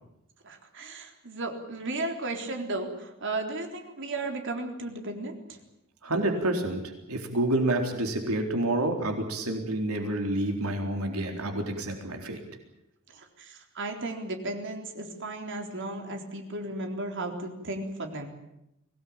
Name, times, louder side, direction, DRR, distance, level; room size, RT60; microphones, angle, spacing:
voice 1, 0.4-5.6 13.1-18.3, right 2 dB, 60° right, 4 dB, 3.9 m, -35 dB
voice 2, 6.0-12.4, right 1 dB, 85° right, 3 dB, 4.0 m, -28 dB
24.5 x 18.0 x 8.9 m, 0.85 s
head